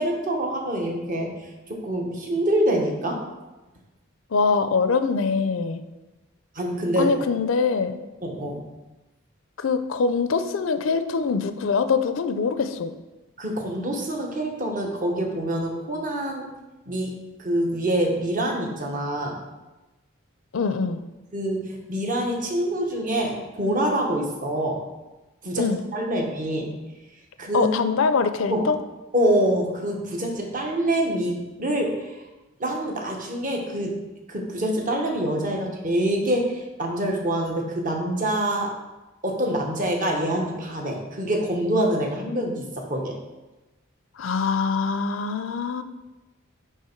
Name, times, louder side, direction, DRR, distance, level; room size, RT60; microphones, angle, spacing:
voice 1, 0.0-1.3 1.7-3.2 6.5-7.1 8.2-8.6 13.4-16.5 16.9-19.4 21.3-24.8 25.4-26.7 27.4-27.7 28.5-28.7 29.1-32.0 32.6-33.9 34.3-38.7 39.2-43.2, right 1 dB, 40° right, 0 dB, 1.1 m, -25 dB
voice 2, 4.3-5.8 7.0-8.0 9.6-12.9 20.5-21.0 25.6-25.8 27.5-28.8 44.2-45.8, left 5 dB, 75° left, 10 dB, 0.5 m, -23 dB
9.4 x 3.4 x 4.5 m, 1.1 s
head